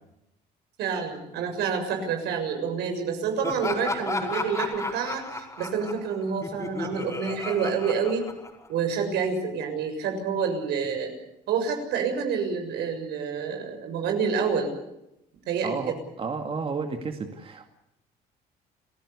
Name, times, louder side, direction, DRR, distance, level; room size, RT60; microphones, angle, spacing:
voice 1, 0.8-8.2 8.7-11.1 11.5-14.8 15.5-16.0, right 6 dB, 80° right, 5 dB, 6.9 m, -28 dB
Laughter, 3.4-8.9, left 2 dB, 20° left, 5.2 m, -33 dB
voice 2, 15.6-17.7, right 4 dB, 35° right, 5 dB, 2.3 m, -32 dB
29.5 x 16.5 x 8.4 m, 0.86 s
cardioid pair, 110°, 17 cm